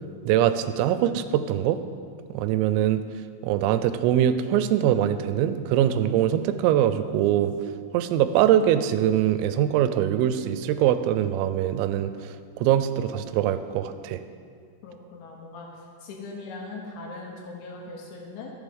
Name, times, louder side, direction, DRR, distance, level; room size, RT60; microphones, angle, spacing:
voice 1, 0.3-1.8 2.3-3.0 3.4-7.5 7.9-12.1 12.6-14.2, right 11 dB, 90° right, 11 dB, 3.3 m, -22 dB
voice 2, 14.8-15.7 16.0-18.5, left 3 dB, 70° left, -1 dB, 3.3 m, -40 dB
13.5 x 7.8 x 5.4 m, 2.2 s
omnidirectional pair, 5.9 m